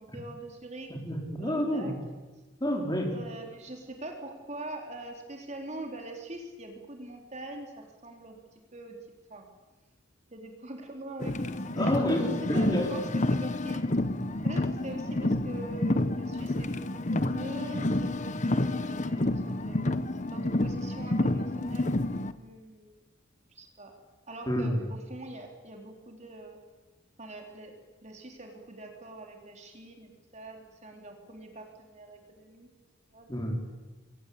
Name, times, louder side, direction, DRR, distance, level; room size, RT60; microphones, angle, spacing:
voice 1, 0.0-0.9 1.3-1.9 3.1-8.4 8.7-9.0 9.3-9.5 10.3-13.8 14.4-16.7 17.1-19.8 20.3-22.9 23.5-24.0 24.3-26.6 27.2-32.7 33.1-33.3, right 1 dB, 35° right, 3 dB, 3.8 m, -43 dB
voice 2, 0.9-2.0 2.6-3.1 11.8-12.9 24.5-24.9 33.3-33.6, equal, 20° left, 2 dB, 4.4 m, -29 dB
Car, 11.2-22.3, left 1 dB, 40° left, 1.1 m, -29 dB
28.0 x 23.0 x 8.6 m, 1.2 s
head